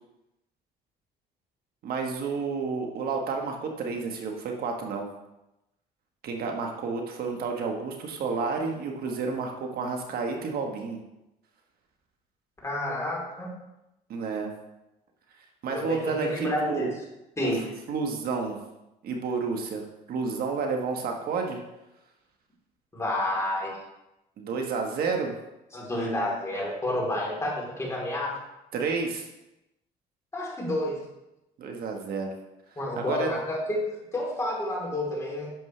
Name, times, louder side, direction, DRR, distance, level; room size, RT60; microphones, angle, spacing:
voice 1, 1.8-5.1 6.2-11.0 14.1-14.5 15.6-16.9 17.4-18.6 19.0-21.6 24.4-25.3 28.7-29.2 31.6-32.3 33.0-33.3, right 4 dB, 65° right, 2 dB, 1.3 m, -30 dB
voice 2, 12.6-13.5 15.7-16.9 17.4-17.6 22.9-23.7 25.7-28.4 30.3-31.1 32.8-35.5, left 1 dB, 15° left, -4 dB, 3.5 m, -30 dB
10.5 x 7.2 x 3.3 m, 0.93 s
cardioid pair, 110°, 17 cm